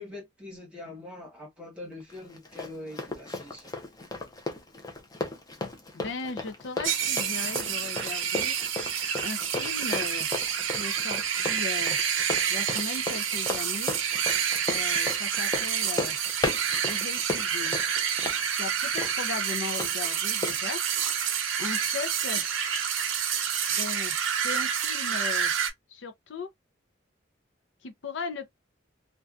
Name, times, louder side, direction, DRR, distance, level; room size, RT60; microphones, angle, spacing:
voice 1, 0.0-3.7 21.4-21.7, left 2 dB, 5° right, 1.1 m, -43 dB
Run, 2.1-19.9 20.4-20.6, left 2 dB, 20° left, 0.5 m, -35 dB
voice 2, 5.9-8.6 9.2-10.3 10.8-12.0 12.5-14.0 14.7-16.2 16.8-17.8 18.5-20.8 21.6-22.4 23.7-24.2 24.4-25.5 25.9-26.5 27.8-28.5, left 4 dB, 70° left, 0.5 m, -37 dB
sound 1, 6.8-25.7, right 8 dB, 90° right, 0.6 m, -28 dB
2.6 x 2.2 x 2.3 m
head